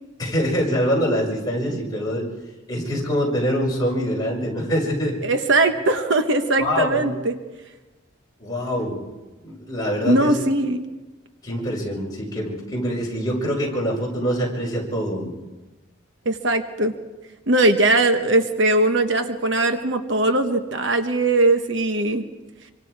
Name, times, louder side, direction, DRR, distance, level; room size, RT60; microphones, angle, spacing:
voice 1, 0.2-2.2 2.7-5.2 6.6-7.1 8.4-9.0 9.4-10.3 11.4-15.3, equal, 20° left, -3 dB, 5.5 m, -24 dB
voice 2, 5.2-7.4 10.0-10.8 16.2-17.0 17.5-22.3, right 2 dB, 60° right, 7 dB, 1.2 m, -20 dB
26.0 x 25.0 x 4.8 m, 1.1 s
head